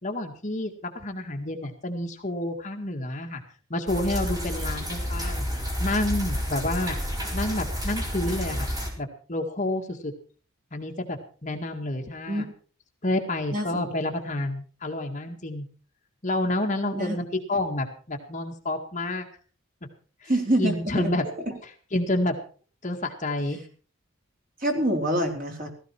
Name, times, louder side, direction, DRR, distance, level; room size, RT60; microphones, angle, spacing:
voice 1, 0.0-3.4 3.7-7.0 7.3-8.7 9.0-10.1 10.7-12.4 13.0-15.6 16.2-19.2 20.2-20.3 20.6-21.2 21.9-22.4 22.8-23.6, left 1 dB, 35° left, 3 dB, 1.9 m, -29 dB
sound 1, 3.9-8.9, equal, 20° right, 4.4 m, -30 dB
voice 2, 13.5-13.9 16.9-17.2 20.3-21.1 24.6-25.7, right 1 dB, 40° right, 2 dB, 4.0 m, -26 dB
16.5 x 15.5 x 4.5 m, 0.40 s
head